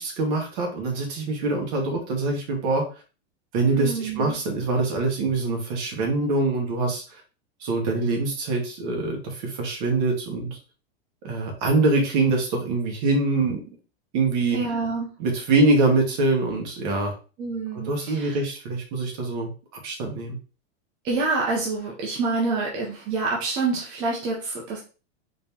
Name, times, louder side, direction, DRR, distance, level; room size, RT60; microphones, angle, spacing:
voice 1, 0.0-2.8 3.5-7.2 7.6-10.6 11.2-13.6 14.1-14.6 15.2-17.1 17.7-19.5 19.8-20.4, right 3 dB, 40° right, 1 dB, 1.3 m, -24 dB
voice 2, 3.7-4.3 14.5-15.1 17.4-18.4 21.0-24.8, right 3 dB, 15° right, -3 dB, 0.4 m, -27 dB
4.0 x 2.8 x 3.5 m, 0.34 s
supercardioid pair, 170°, 34 cm